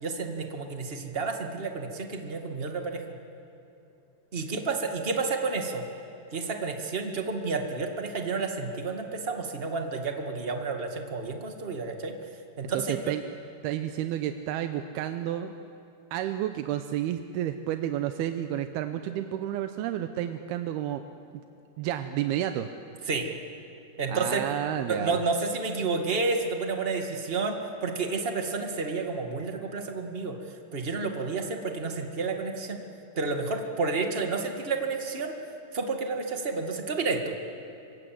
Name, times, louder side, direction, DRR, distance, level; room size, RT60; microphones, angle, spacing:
voice 1, 0.0-3.0 4.3-5.8 6.3-12.1 12.6-13.1 23.1-23.3 24.0-24.4 24.9-30.3 30.7-32.8 33.2-35.3 35.7-37.4, right 4 dB, 30° right, 4 dB, 1.1 m, -30 dB
voice 2, 12.7-13.2 13.6-15.5 16.1-21.0 21.8-22.7 24.1-25.2, right 11 dB, 90° right, 8 dB, 2.8 m, -31 dB
26.0 x 25.5 x 7.7 m, 2.9 s
omnidirectional pair, 4.4 m